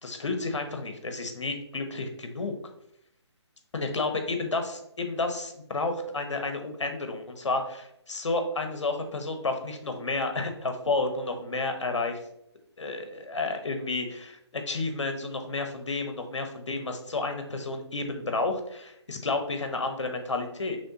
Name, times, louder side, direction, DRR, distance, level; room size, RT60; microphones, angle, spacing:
voice 1, 0.0-2.5 3.7-12.2 12.8-20.8, left 3 dB, 85° left, 6 dB, 0.9 m, -31 dB
5.3 x 3.2 x 2.8 m, 0.77 s
hypercardioid pair, 160°, 15 cm